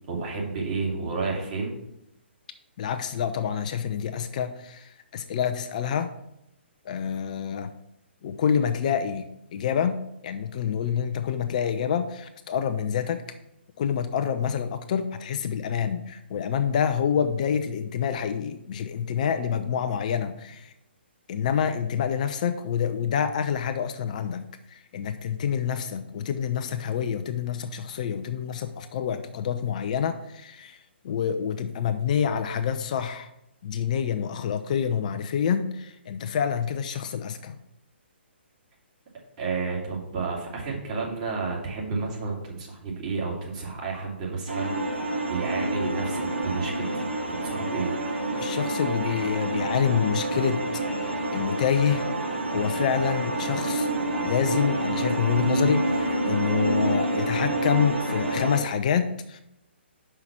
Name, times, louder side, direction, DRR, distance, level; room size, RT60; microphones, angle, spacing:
voice 1, 0.1-1.7 39.4-47.9, right 4 dB, 35° right, -2 dB, 2.5 m, -31 dB
voice 2, 2.8-6.1 6.8-7.7 8.2-10.0 10.2-13.2 13.8-20.7 21.3-33.3 33.6-37.6 48.4-50.6 51.0-52.1 52.5-53.9 54.2-59.4, left 8 dB, 40° left, 9 dB, 0.5 m, -27 dB
sound 1, 44.5-58.6, right 1 dB, 75° right, 1.4 m, -28 dB
5.8 x 5.6 x 5.9 m, 0.81 s
figure-of-eight pair, 130°, 6 cm